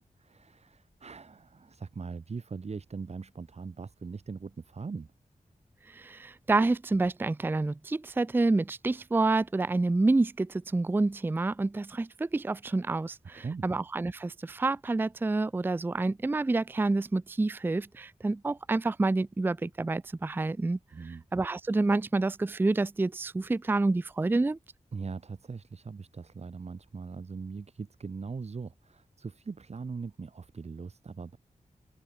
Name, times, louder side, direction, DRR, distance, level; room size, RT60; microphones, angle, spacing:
voice 1, 0.0-5.1 13.3-13.6 20.9-21.2 24.9-31.4, right 4 dB, 55° right, 2.7 m, -40 dB
voice 2, 5.9-20.8 21.3-24.6, right 3 dB, 15° right, 0.4 m, -28 dB
wide cardioid pair, 120°, 13 cm